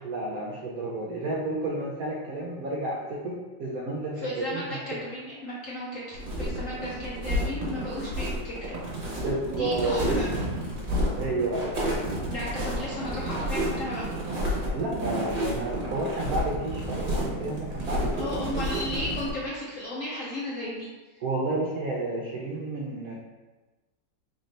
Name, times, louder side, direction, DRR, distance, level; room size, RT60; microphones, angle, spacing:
voice 1, 0.0-4.8 9.2-10.1 11.2-11.8 14.7-18.2 18.5-18.8 21.2-23.1, right 2 dB, 70° right, -4 dB, 0.8 m, -31 dB
voice 2, 4.2-8.8 9.5-10.3 12.3-14.0 18.1-20.9, left 1 dB, 65° left, -5 dB, 0.8 m, -34 dB
sound 1, 6.1-19.3, equal, 35° right, 0.8 m, -30 dB
4.2 x 2.6 x 3.2 m, 1.2 s
omnidirectional pair, 2.0 m